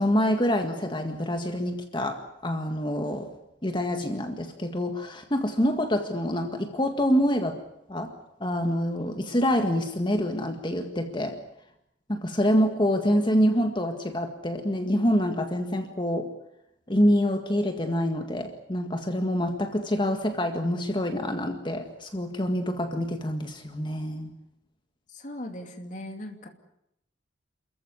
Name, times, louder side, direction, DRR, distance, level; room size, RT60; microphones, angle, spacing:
voice 1, 0.0-3.3 3.6-7.6 7.9-8.1 8.4-11.4 12.1-16.3 16.9-24.3, equal, 25° left, 5 dB, 1.8 m, -26 dB
voice 2, 25.1-26.5, left 1 dB, 45° left, 4 dB, 2.7 m, -38 dB
29.0 x 14.5 x 9.7 m, 0.80 s
head